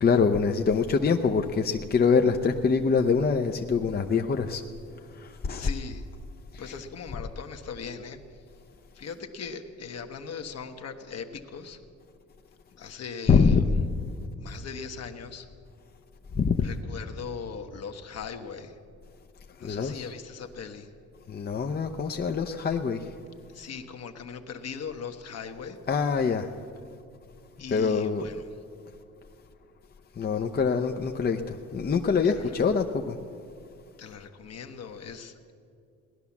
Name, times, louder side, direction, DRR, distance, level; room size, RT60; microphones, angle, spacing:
voice 1, 0.0-4.6 5.1-5.7 6.5-6.6 13.3-13.9 16.3-16.7 19.6-20.1 21.3-23.1 25.9-26.5 27.7-28.2 30.2-33.2, left 5 dB, 30° left, 4 dB, 0.7 m, -24 dB
voice 2, 5.6-6.0 6.6-8.4 8.9-11.8 12.8-13.7 14.4-15.5 16.6-18.8 19.6-20.9 23.5-25.8 27.6-28.5 32.2-32.6 34.0-35.5, left 6 dB, 55° left, 6 dB, 1.2 m, -39 dB
18.0 x 10.5 x 7.2 m, 2.4 s
cardioid pair, 90°, 30 cm